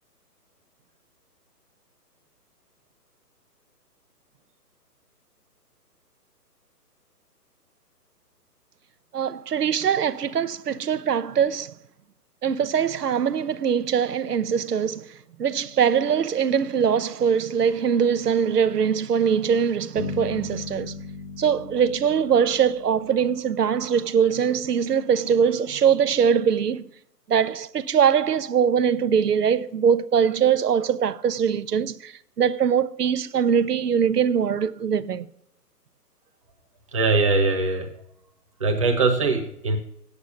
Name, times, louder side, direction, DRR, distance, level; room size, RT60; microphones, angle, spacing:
voice 1, 9.1-11.7 12.4-21.0 21.4-26.9 27.3-35.3, right 7 dB, 70° right, 0.9 m, -22 dB
Bass guitar, 20.0-23.8, left 4 dB, 35° left, 1.3 m, -37 dB
voice 2, 36.9-37.9 38.6-39.8, right 3 dB, 20° right, 1.1 m, -21 dB
9.2 x 8.3 x 7.0 m
hypercardioid pair, 175°, 48 cm